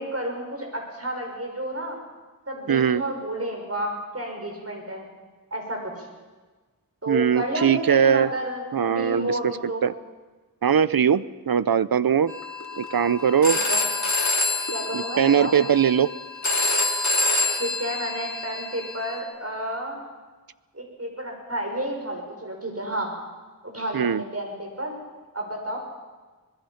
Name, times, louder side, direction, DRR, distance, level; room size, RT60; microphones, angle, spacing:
voice 1, 0.0-2.0 2.5-5.0 5.5-6.1 7.0-9.9 13.7-13.8 14.7-15.5 17.6-20.0 20.7-23.1 23.6-25.0 25.3-25.8, right 1 dB, 45° right, 1 dB, 5.9 m, -31 dB
voice 2, 2.7-3.0 7.1-8.3 8.7-9.5 9.8-9.9 10.6-12.3 12.8-13.6 14.9-16.1 23.9-24.2, right 8 dB, 90° right, 17 dB, 0.6 m, -21 dB
Telephone, 12.3-19.2, left 2 dB, 55° left, 3.3 m, -27 dB
24.5 x 20.5 x 5.8 m, 1.3 s
wide cardioid pair, 50°, 34 cm